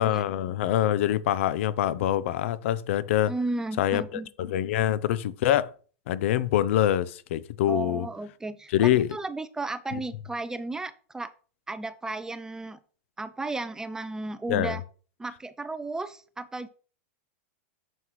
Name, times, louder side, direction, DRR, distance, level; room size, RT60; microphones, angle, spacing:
voice 1, 0.0-3.3 3.8-5.7 6.1-8.1 8.7-9.1 9.9-10.0 14.5-14.8, left 12 dB, 65° left, 0.5 m, -25 dB
voice 2, 3.3-4.3 7.7-11.3 11.7-12.8 13.2-14.8 15.2-16.7, right 2 dB, 10° right, 0.4 m, -34 dB
7.1 x 5.9 x 3.1 m
hypercardioid pair, 130°, 7 cm